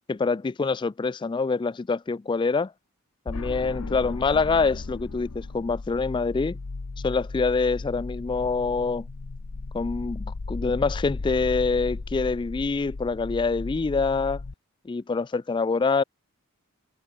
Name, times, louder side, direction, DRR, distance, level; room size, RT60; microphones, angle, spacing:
voice 1, 0.1-2.7 3.3-6.6 7.0-9.0 9.7-14.4 14.9-16.0, left 4 dB, 20° left, 0.3 m, -25 dB
sound 1, 3.3-14.5, left 3 dB, 85° left, 0.8 m, -35 dB
open air
head